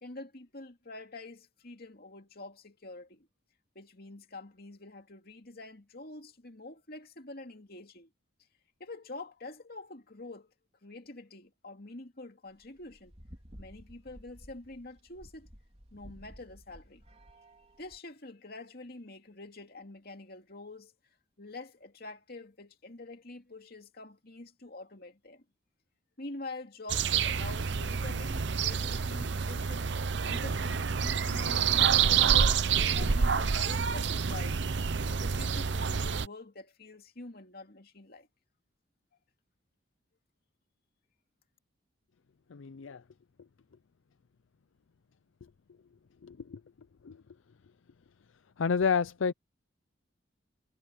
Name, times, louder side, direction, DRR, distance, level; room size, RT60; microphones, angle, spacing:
voice 1, 0.0-3.3 3.7-8.1 8.8-10.5 10.8-13.1 13.6-15.5 15.9-17.0 17.8-20.9 21.4-25.4 26.2-29.8 30.2-32.5 32.8-34.6 35.2-38.3, left 2 dB, 50° left, 2.4 m, -46 dB
sound 1, 12.5-18.0, equal, 30° right, 3.9 m, -53 dB
sound 2, 26.9-36.3, right 6 dB, 60° right, 0.7 m, -28 dB
voice 2, 42.5-43.0 46.2-46.6 47.0-47.2 48.6-49.3, left 6 dB, 80° left, 0.5 m, -29 dB
head